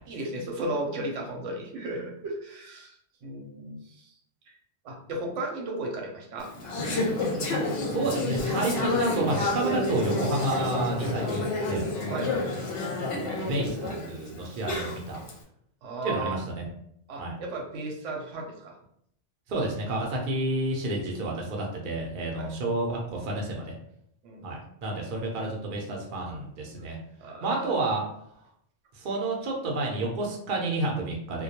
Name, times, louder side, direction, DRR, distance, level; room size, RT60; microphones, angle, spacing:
voice 1, 0.0-4.1 4.8-6.5 12.1-12.5 15.8-16.4 17.1-18.8 22.4-22.5 24.2-24.5 27.2-27.7, right 2 dB, 85° right, 1 dB, 0.9 m, -35 dB
Conversation / Chatter, 6.4-15.3, left 2 dB, 65° left, 0.8 m, -29 dB
voice 2, 7.9-11.8 13.4-15.2 16.0-16.6 17.2-17.3 19.5-23.7 24.4-27.0 27.4-28.0 28.9-31.4, right 2 dB, 55° right, -1 dB, 0.7 m, -30 dB
2.2 x 2.2 x 2.8 m, 0.72 s
omnidirectional pair, 1.2 m